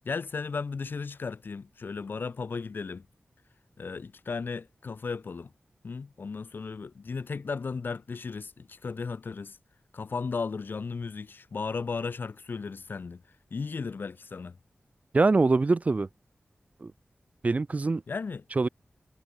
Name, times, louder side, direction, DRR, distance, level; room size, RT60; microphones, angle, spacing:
voice 1, 0.1-3.1 3.8-5.5 5.8-9.6 9.9-13.2 13.5-14.6 18.1-18.4, left 4 dB, 70° left, 6.9 m, -35 dB
voice 2, 15.1-16.1 16.8-16.9 17.4-18.0 18.6-18.7, right 3 dB, 40° right, 3.7 m, -23 dB
wide cardioid pair, 115°, 4 cm